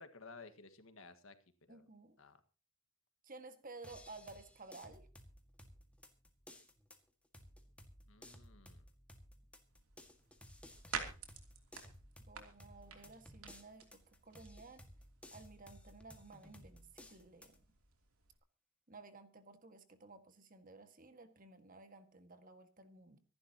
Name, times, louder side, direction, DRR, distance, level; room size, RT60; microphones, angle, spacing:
voice 1, 0.0-1.3 1.7-1.8 2.2-2.4 8.1-8.9, left 4 dB, 70° left, 9 dB, 1.7 m, -56 dB
voice 2, 1.7-2.2 3.2-5.1 12.3-14.9 15.3-17.6 18.9-23.2, right 3 dB, 40° right, 8 dB, 1.8 m, -55 dB
sound 1, 3.8-17.6, left 1 dB, 5° left, 1.8 m, -58 dB
sound 2, 9.7-18.4, right 6 dB, 90° right, 3.0 m, -51 dB
25.5 x 11.5 x 2.9 m, 0.33 s
head